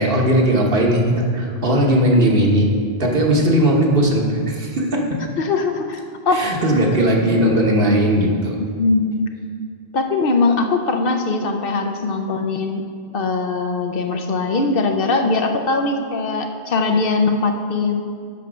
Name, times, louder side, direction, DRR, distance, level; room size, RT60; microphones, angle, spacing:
voice 1, 0.0-2.7 3.0-5.2 6.3-8.6, right 1 dB, 60° right, 0 dB, 1.4 m, -17 dB
voice 2, 5.4-6.4 8.8-9.2 9.9-12.8 13.1-18.0, left 3 dB, 60° left, 5 dB, 0.9 m, -21 dB
8.4 x 5.7 x 6.1 m, 2.2 s
omnidirectional pair, 1.1 m